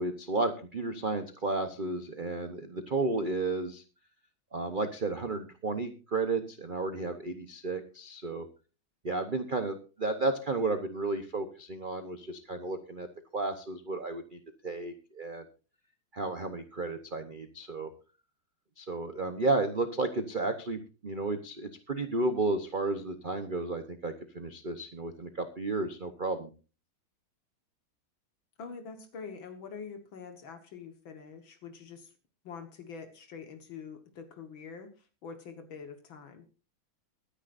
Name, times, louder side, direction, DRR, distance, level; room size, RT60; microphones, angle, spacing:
voice 1, 0.0-3.8 4.5-8.5 9.0-13.1 13.3-15.4 16.1-17.9 18.8-26.5, right 3 dB, 40° right, 8 dB, 0.7 m, -33 dB
voice 2, 28.6-32.1 32.4-36.5, left 5 dB, 70° left, 7 dB, 2.2 m, -45 dB
23.0 x 10.0 x 2.6 m, 0.33 s
omnidirectional pair, 2.2 m